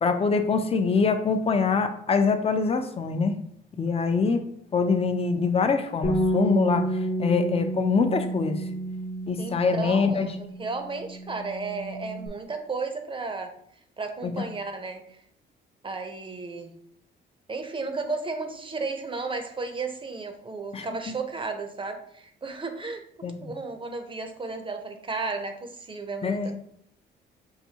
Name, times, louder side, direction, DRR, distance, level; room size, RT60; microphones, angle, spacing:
voice 1, 0.0-3.4 3.8-4.4 4.7-8.6 9.3-10.3 14.2-14.3 20.7-20.9 23.2-23.5 26.2-26.6, left 5 dB, 30° left, 7 dB, 0.5 m, -24 dB
Bass guitar, 6.0-12.3, right 1 dB, 50° left, 1.1 m, -30 dB
voice 2, 9.4-13.5 14.0-15.2 15.8-16.7 17.5-26.6, right 3 dB, 25° right, 6 dB, 0.7 m, -34 dB
5.7 x 2.6 x 2.8 m, 0.69 s
cardioid pair, 90°, 20 cm